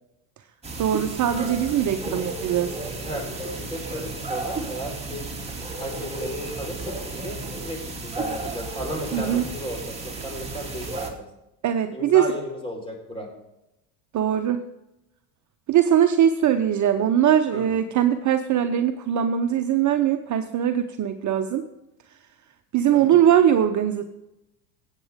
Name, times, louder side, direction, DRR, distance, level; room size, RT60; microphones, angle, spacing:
sound 1, 0.6-11.1, right 2 dB, 15° right, 2.6 m, -33 dB
voice 1, 0.8-2.7 9.1-9.5 11.6-12.2 14.1-14.6 15.7-21.7 22.7-24.0, right 10 dB, 40° right, 8 dB, 0.8 m, -21 dB
voice 2, 3.6-5.3 5.8-7.4 7.6-11.2 11.9-13.3 17.5-17.6 22.9-23.2, equal, 10° left, 2 dB, 4.4 m, -34 dB
17.0 x 8.3 x 3.6 m, 0.91 s
hypercardioid pair, 90°, 48 cm